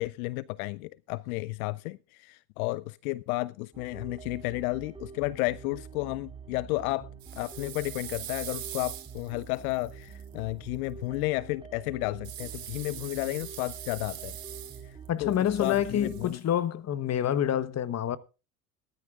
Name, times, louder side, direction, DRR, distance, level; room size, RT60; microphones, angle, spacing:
voice 1, 0.0-7.1 7.4-14.3 14.8-16.4, left 21 dB, 70° left, 0.6 m, -32 dB
sound 1, 3.7-16.3, right 6 dB, 10° right, 4.1 m, -46 dB
sound 2, 7.2-10.3 12.2-15.1 15.3-16.4, right 12 dB, 50° right, 3.5 m, -42 dB
voice 2, 15.1-18.2, left 10 dB, 35° left, 1.2 m, -27 dB
19.5 x 13.0 x 2.4 m
hypercardioid pair, 75°, 45 cm